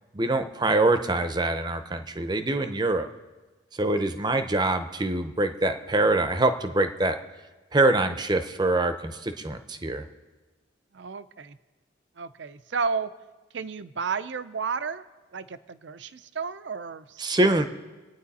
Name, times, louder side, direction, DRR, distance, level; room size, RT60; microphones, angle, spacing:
voice 1, 0.1-3.1 3.8-7.2 7.7-10.0 17.2-17.7, right 2 dB, 20° right, 9 dB, 0.6 m, -24 dB
voice 2, 10.9-11.6 12.2-13.1 13.5-15.0 15.3-17.3, right 5 dB, 70° right, 14 dB, 0.6 m, -32 dB
25.0 x 9.3 x 4.2 m, 1.3 s
head